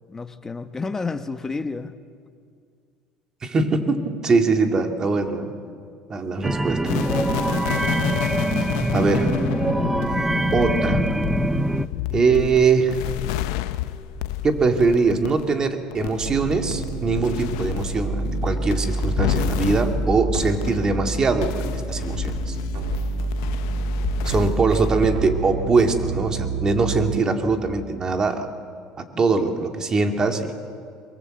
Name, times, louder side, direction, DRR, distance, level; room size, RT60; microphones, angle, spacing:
voice 1, 0.1-1.9 24.3-24.7, left 4 dB, 20° left, 10 dB, 1.2 m, -31 dB
voice 2, 3.4-5.5 6.1-6.9 8.9-9.3 10.5-11.0 12.1-13.0 14.4-22.6 24.2-28.5 29.0-30.5, right 4 dB, 30° right, 5 dB, 2.4 m, -22 dB
sound 1, 6.4-11.9, right 2 dB, 10° right, 0.7 m, -24 dB
sound 2, 6.8-21.0 21.4-25.3 25.8-26.0, left 14 dB, 85° left, 0.8 m, -30 dB
sound 3, 16.2-27.2, right 2 dB, 70° right, 3.3 m, -28 dB
23.5 x 22.5 x 7.8 m, 2.2 s
supercardioid pair, 105°, 2 cm